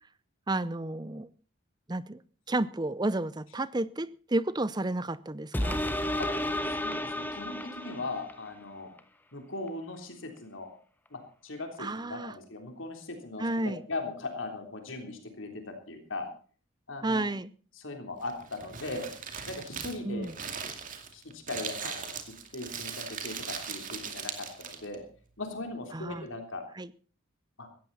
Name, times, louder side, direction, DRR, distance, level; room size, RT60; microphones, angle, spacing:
voice 1, 0.5-1.3 1.9-2.2 2.5-5.8 11.8-12.3 13.4-13.8 17.0-17.5 20.0-20.3 25.9-26.2 26.8-26.9, right 2 dB, 20° right, 0.6 m, -31 dB
sound 1, 5.5-8.5 9.0-9.1, left 1 dB, 10° left, 1.2 m, -32 dB
voice 2, 6.6-8.9 9.3-10.7 11.1-16.3 16.9-17.3 17.8-19.1 19.5-20.3 21.1-22.1 22.5-25.0 25.4-26.6 27.6-27.7, left 2 dB, 65° left, 3.5 m, -39 dB
Crumpling crinkling, 18.2-25.0, right 6 dB, 40° right, 2.4 m, -39 dB
17.5 x 14.5 x 4.2 m
head